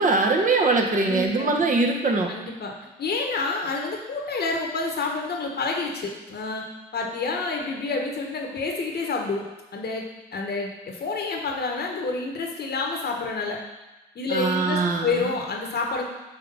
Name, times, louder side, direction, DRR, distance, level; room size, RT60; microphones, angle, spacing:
voice 1, 0.0-2.3 14.3-15.3, right 3 dB, 40° right, 2 dB, 1.0 m, -22 dB
voice 2, 1.0-1.6 2.3-2.7 3.0-6.6 6.9-9.4 9.7-10.0 10.3-13.6 14.1-16.0, left 3 dB, 55° left, 1 dB, 1.2 m, -28 dB
5.6 x 3.4 x 5.3 m, 1.1 s
hypercardioid pair, 45°, 20 cm